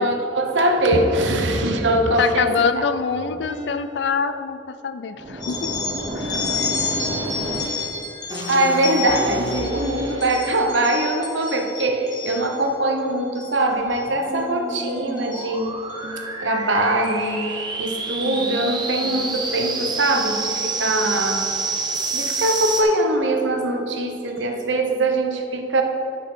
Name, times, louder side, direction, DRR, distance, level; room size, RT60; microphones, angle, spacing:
voice 1, 0.0-2.9 8.5-15.7 16.0-21.5 22.1-25.8, right 1 dB, 80° right, 4 dB, 1.0 m, -22 dB
voice 2, 2.2-5.7 6.2-6.6 8.3-8.4 18.2-19.4, left 5 dB, 65° left, 11 dB, 0.4 m, -26 dB
sound 1, 3.1-4.0 5.2-7.8 8.3-10.4 14.0-22.8, right 3 dB, 25° right, 0.9 m, -29 dB
sound 2, 5.4-12.7 13.2-13.6 13.9-14.3 14.7-16.1 17.0-17.3 18.2-18.4 19.3-19.4 19.8-19.9 20.5-20.7, left 5 dB, 20° left, 1.1 m, -31 dB
12.0 x 6.2 x 4.4 m, 2.9 s
head